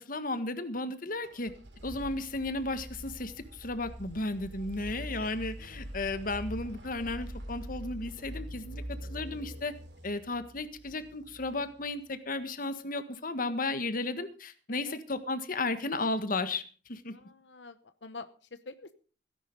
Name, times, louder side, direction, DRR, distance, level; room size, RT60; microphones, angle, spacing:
voice 1, 0.1-1.5 1.8-9.7 10.0-16.6 16.9-17.1, left 2 dB, 50° left, 10 dB, 1.6 m, -34 dB
sound 1, 1.2-12.0, equal, 90° right, 4.3 m, -44 dB
voice 2, 17.1-17.8 18.0-18.9, left 3 dB, 90° left, 11 dB, 1.0 m, -46 dB
17.0 x 11.0 x 5.3 m, 0.38 s
head